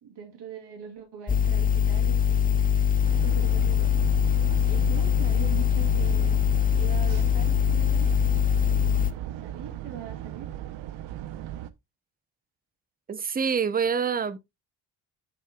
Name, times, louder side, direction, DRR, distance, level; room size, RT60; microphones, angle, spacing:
voice 1, 0.0-2.7 3.1-3.9 4.6-6.4 6.7-8.1 8.8-10.5, right 8 dB, 60° right, 2.9 m, -42 dB
sound 1, 1.3-9.1, left 8 dB, 20° left, 0.5 m, -23 dB
sound 2, 3.0-11.7, right 13 dB, 90° right, 0.7 m, -37 dB
voice 2, 13.1-14.4, right 6 dB, 20° right, 0.6 m, -26 dB
13.5 x 4.6 x 2.3 m
cardioid pair, 90°, 45 cm